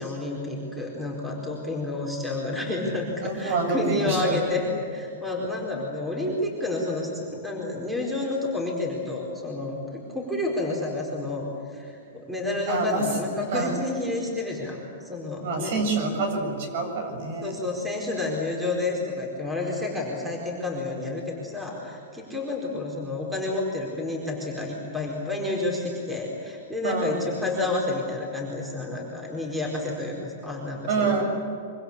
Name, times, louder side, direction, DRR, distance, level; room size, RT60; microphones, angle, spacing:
voice 1, 0.0-14.8 15.0-15.7 17.4-31.2, left 2 dB, 5° right, -1 dB, 4.5 m, -30 dB
voice 2, 3.2-4.4 12.7-13.1 13.5-13.8 15.4-17.5 26.8-27.2 30.9-31.2, right 3 dB, 55° right, 5 dB, 7.7 m, -27 dB
25.5 x 25.0 x 8.5 m, 2.7 s
supercardioid pair, 160°, 0 cm